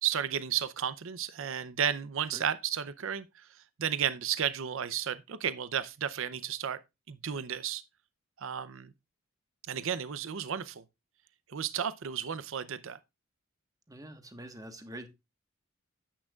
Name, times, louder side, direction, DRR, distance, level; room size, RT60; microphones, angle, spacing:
voice 1, 0.0-6.8 7.1-7.8 8.4-8.9 9.7-10.8 11.5-13.0, right 8 dB, 70° right, 0.6 m, -33 dB
voice 2, 13.9-15.1, right 1 dB, 15° right, 1.3 m, -45 dB
10.0 x 8.8 x 2.4 m
head